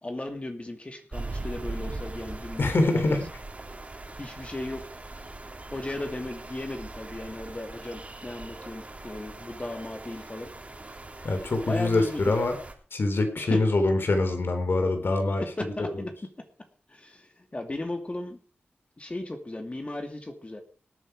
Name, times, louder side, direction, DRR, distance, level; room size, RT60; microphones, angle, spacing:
voice 1, 0.0-3.2 4.2-4.9 5.7-10.5 11.6-12.4 13.4-13.6 15.4-16.1 16.9-18.4 19.0-20.6, left 2 dB, 30° left, 5 dB, 2.5 m, -36 dB
sound 1, 1.1-12.7, right 2 dB, 35° right, 3.3 m, -40 dB
voice 2, 2.6-3.2 11.2-12.5 12.9-15.4 15.8-15.9, left 2 dB, 70° left, 6 dB, 3.6 m, -24 dB
19.0 x 9.4 x 4.9 m, 0.39 s
cardioid pair, 60°, 4 cm